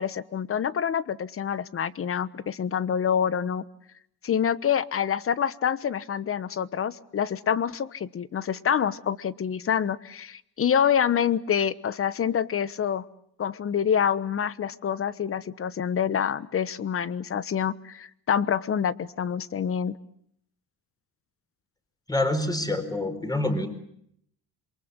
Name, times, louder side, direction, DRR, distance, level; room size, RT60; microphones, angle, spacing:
voice 1, 0.0-3.6 4.2-13.0 13.4-20.0, left 8 dB, 40° left, 18 dB, 1.2 m, -26 dB
voice 2, 22.1-23.7, left 1 dB, 10° left, 8 dB, 4.6 m, -26 dB
27.5 x 23.5 x 8.1 m, 0.71 s
cardioid pair, 115°, 36 cm